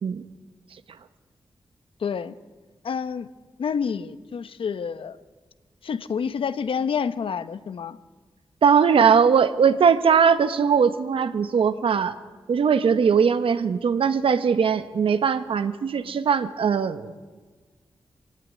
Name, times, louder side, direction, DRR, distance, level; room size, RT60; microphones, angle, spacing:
voice 1, 2.0-2.3 2.8-3.3 3.6-5.2 5.8-8.0, left 6 dB, 80° left, 13 dB, 1.0 m, -28 dB
voice 2, 8.6-12.2 12.5-17.2, right 6 dB, 85° right, 11 dB, 1.2 m, -20 dB
24.5 x 18.0 x 9.6 m, 1.4 s
wide cardioid pair, 145°, 9 cm